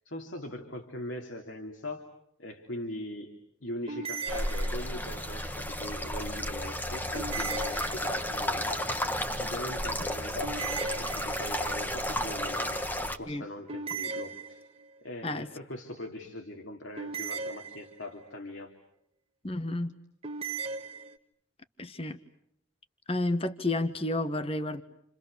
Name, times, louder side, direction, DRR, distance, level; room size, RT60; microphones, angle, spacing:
voice 1, 0.0-2.1 2.4-14.6 15.0-18.7, left 1 dB, 75° left, 3 dB, 3.1 m, -41 dB
sound 1, 3.9-5.2 7.1-8.4 10.4-11.7 13.7-15.0 17.0-18.3 20.2-21.2, right 5 dB, 30° right, 1.4 m, -38 dB
sound 2, 4.3-13.2, equal, 10° left, 1.6 m, -32 dB
voice 2, 19.4-19.9 21.8-22.2 23.1-24.8, left 2 dB, 30° left, 10 dB, 1.5 m, -31 dB
30.0 x 29.0 x 6.9 m, 0.73 s
head